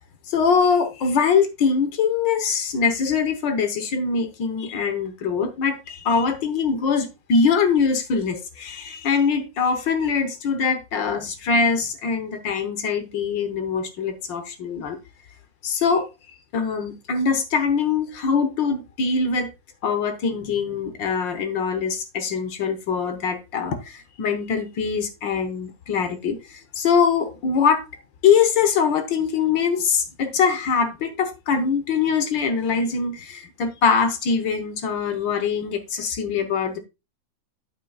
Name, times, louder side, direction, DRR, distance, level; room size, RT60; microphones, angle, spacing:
voice 1, 0.3-15.0 15.6-16.1 16.5-19.5 19.8-27.8 28.2-36.8, left 5 dB, 80° left, 1.8 m, -23 dB
8.8 x 8.3 x 2.3 m
omnidirectional pair, 2.0 m